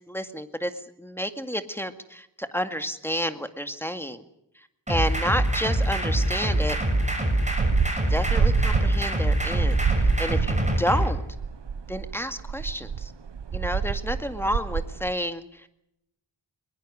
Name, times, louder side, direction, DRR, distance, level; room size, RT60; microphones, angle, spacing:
voice 1, 0.1-0.7 1.0-4.2 4.9-6.8 8.1-11.2 11.9-13.1 13.5-15.4, equal, 5° left, 8 dB, 2.1 m, -30 dB
sound 1, 4.9-11.1, right 1 dB, 15° right, 6.9 m, -24 dB
sound 2, 6.6-15.1, right 6 dB, 65° right, 0.9 m, -28 dB
21.5 x 21.0 x 6.4 m, 0.79 s
wide cardioid pair, 60°, 47 cm